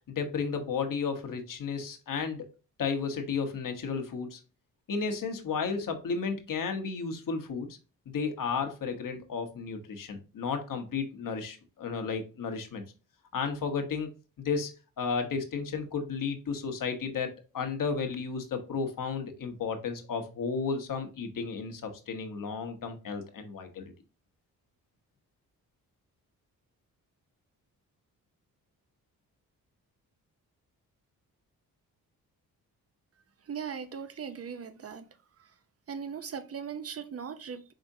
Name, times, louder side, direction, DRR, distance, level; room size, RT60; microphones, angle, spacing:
voice 1, 0.1-2.5 2.8-4.4 4.9-7.7 8.1-12.8 13.3-14.1 14.4-17.3 17.5-23.9, left 5 dB, 60° left, 1.1 m, -33 dB
voice 2, 33.5-35.1 35.9-37.7, right 7 dB, 40° right, 0.8 m, -39 dB
5.0 x 3.5 x 2.7 m
supercardioid pair, 55°, 37 cm